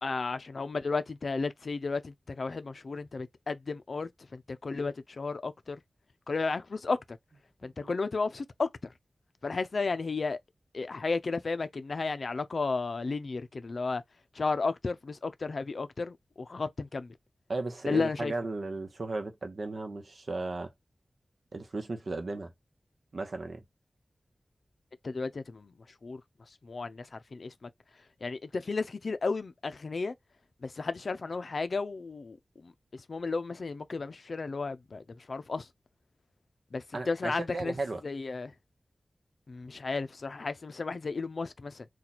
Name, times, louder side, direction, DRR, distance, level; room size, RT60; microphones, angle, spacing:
voice 1, 0.0-5.8 6.3-7.2 7.6-8.9 9.4-10.4 10.7-14.0 14.3-17.1 17.9-18.3 25.0-25.7 26.0-26.2 26.6-27.7 28.2-30.1 30.6-35.7 36.7-37.7 38.0-38.5 39.5-41.9, left 4 dB, 65° left, 0.4 m, -33 dB
voice 2, 17.5-20.7 21.5-22.5 23.1-23.6 36.9-38.0, right 3 dB, 65° right, 0.9 m, -35 dB
2.9 x 2.3 x 4.0 m
wide cardioid pair, 65°, 0 cm